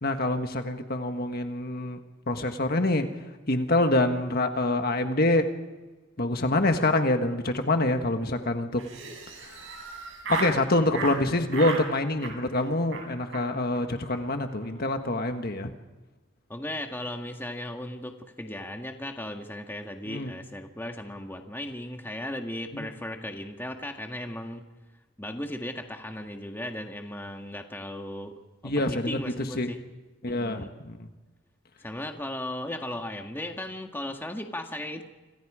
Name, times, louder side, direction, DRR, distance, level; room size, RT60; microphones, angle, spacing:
voice 1, 0.0-2.0 2.3-3.1 3.5-5.5 6.2-8.8 9.4-9.7 10.3-15.7 20.1-20.3 22.7-22.9 28.6-29.2 29.5-29.7 30.2-31.1, left 2 dB, 45° left, 6 dB, 1.6 m, -26 dB
Laughter, 8.8-10.6 10.9-11.2 11.5-11.9 12.2-12.6 12.9-13.0 13.3-13.4 13.7-13.8 14.0-14.2 14.5-14.8, right 4 dB, 60° right, 7.4 m, -35 dB
voice 2, 16.5-24.6 25.2-28.3 28.6-29.8 30.3-30.7 31.8-35.0, left 1 dB, 10° left, 4 dB, 1.7 m, -36 dB
29.0 x 27.0 x 5.0 m, 1.2 s
head